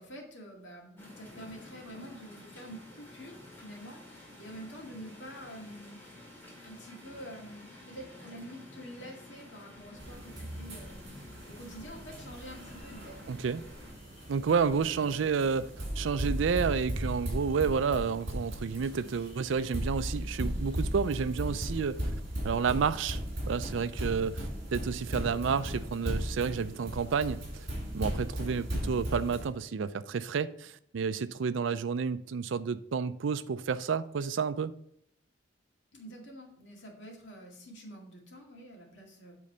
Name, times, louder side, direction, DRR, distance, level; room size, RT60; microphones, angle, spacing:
voice 1, 0.0-6.0 6.6-13.3 35.9-39.3, equal, 70° left, 2.1 m, -47 dB
sound 1, 1.0-13.9, left 1 dB, 10° left, 2.2 m, -51 dB
sound 2, 9.7-21.8, left 1 dB, 30° left, 0.9 m, -56 dB
sound 3, 10.0-29.5, equal, 45° right, 3.0 m, -37 dB
voice 2, 13.3-13.6 14.3-15.7 16.0-22.0 22.4-23.2 23.5-27.7 27.9-34.7, right 6 dB, 80° right, 0.4 m, -30 dB
8.5 x 3.9 x 5.6 m
head